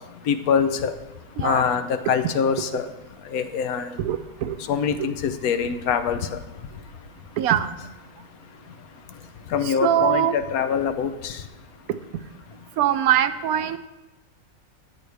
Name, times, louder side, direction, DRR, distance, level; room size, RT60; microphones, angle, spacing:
voice 1, 0.3-0.9 1.4-2.9 3.3-4.0 4.7-6.4 9.5-11.4, left 7 dB, 85° left, 9 dB, 1.2 m, -24 dB
voice 2, 1.4-1.7 4.0-4.6 7.4-7.7 9.6-10.4 12.8-13.8, right 10 dB, 90° right, 11 dB, 1.1 m, -22 dB
13.0 x 7.9 x 3.4 m, 1.0 s
omnidirectional pair, 1.5 m